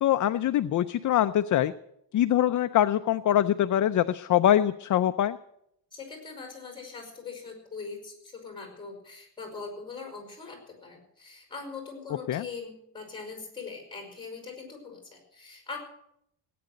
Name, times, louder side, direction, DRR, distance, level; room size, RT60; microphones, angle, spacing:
voice 1, 0.0-1.7 2.1-5.4 12.3-12.4, left 11 dB, 45° left, 11 dB, 0.5 m, -23 dB
voice 2, 5.9-15.8, left 4 dB, 10° left, 3 dB, 4.9 m, -41 dB
17.0 x 9.4 x 7.8 m, 0.76 s
cardioid pair, 160°, 44 cm